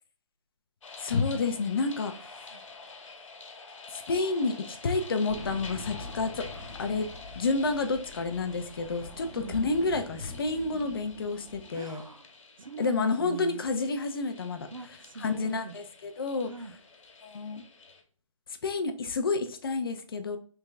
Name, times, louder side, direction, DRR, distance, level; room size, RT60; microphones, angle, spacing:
sound 1, 0.8-18.0, left 4 dB, 65° left, 1.4 m, -48 dB
voice 1, 1.0-2.4 3.9-6.5 6.8-7.1 7.4-12.0 12.8-14.7 15.2-16.5 17.2-17.6 18.6-20.4, left 3 dB, 45° left, 0.6 m, -29 dB
sound 2, 5.3-11.9, left 2 dB, 15° left, 1.0 m, -45 dB
voice 2, 11.7-13.7 14.7-15.8 16.4-16.7, right 4 dB, 80° right, 0.7 m, -42 dB
3.7 x 3.5 x 3.2 m
hypercardioid pair, 160°, 17 cm